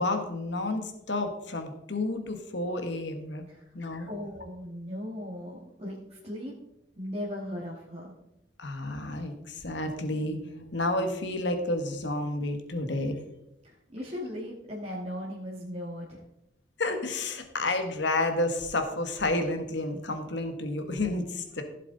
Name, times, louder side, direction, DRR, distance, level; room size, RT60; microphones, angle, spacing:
voice 1, 0.0-3.4 3.7-4.1 8.6-13.1 16.8-21.6, left 2 dB, 60° left, 6 dB, 1.5 m, -30 dB
voice 2, 4.1-6.5 7.0-8.1 13.6-16.2, left 1 dB, 30° right, -5 dB, 1.9 m, -38 dB
15.5 x 7.5 x 3.9 m, 0.86 s
head